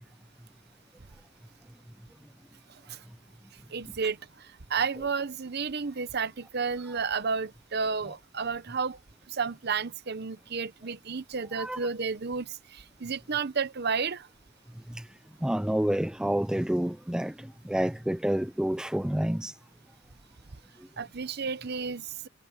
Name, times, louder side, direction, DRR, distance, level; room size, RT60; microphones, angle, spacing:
voice 1, 3.7-9.0 9.3-14.3 21.0-22.3, right 5 dB, 50° right, 0.8 m, -32 dB
voice 2, 15.4-19.5, equal, 5° right, 0.3 m, -29 dB
head